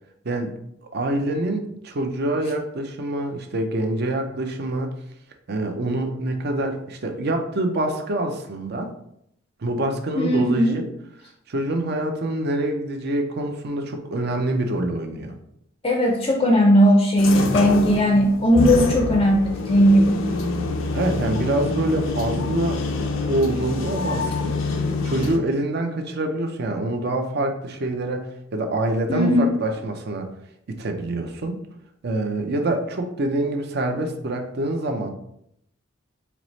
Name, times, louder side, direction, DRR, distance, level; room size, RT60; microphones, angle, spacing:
voice 1, 0.9-4.9 5.5-8.9 9.6-10.9 11.5-15.3 20.9-22.8 23.3-24.6 25.0-30.3 30.7-31.6 32.0-35.1, right 1 dB, 55° right, 4 dB, 0.6 m, -25 dB
voice 2, 10.2-10.8 15.8-20.3 29.1-29.5, equal, 25° left, 1 dB, 0.4 m, -17 dB
sound 1, 17.2-25.4, left 3 dB, 85° left, 0.5 m, -26 dB
4.6 x 2.0 x 4.0 m, 0.75 s
head